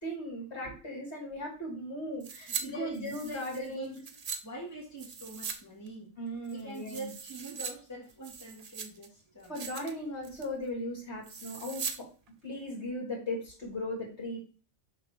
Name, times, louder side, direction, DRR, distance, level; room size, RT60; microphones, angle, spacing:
voice 1, 0.0-4.0 6.2-7.1 9.5-12.1 12.4-14.4, left 1 dB, 55° left, -2 dB, 2.8 m, -37 dB
sound 1, 2.2-2.6 2.9-4.4 5.0-5.6 5.9-6.0 6.4-7.7 8.1-9.1 9.4-9.9 10.2-10.5 11.2-12.0 12.3-12.4, right 5 dB, 45° right, 0.5 m, -40 dB
voice 2, 2.5-4.1 4.4-6.1 6.5-9.5, right 2 dB, 10° left, -4 dB, 2.2 m, -43 dB
6.6 x 2.9 x 5.8 m, 0.36 s
omnidirectional pair, 1.4 m